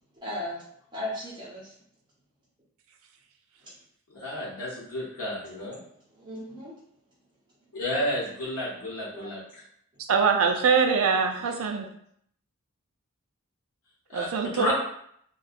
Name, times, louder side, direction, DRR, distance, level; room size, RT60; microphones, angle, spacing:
voice 1, 0.2-0.6 0.9-1.7 6.1-6.7 9.1-9.4 11.4-11.8, left 1 dB, 20° right, -7 dB, 0.7 m, -37 dB
voice 2, 4.1-5.8 7.7-9.4 14.1-14.3 14.5-14.7, left 1 dB, 80° left, -8 dB, 0.9 m, -31 dB
voice 3, 10.1-11.9 14.1-14.7, right 5 dB, 70° right, 4 dB, 0.4 m, -23 dB
2.7 x 2.2 x 2.4 m, 0.68 s
head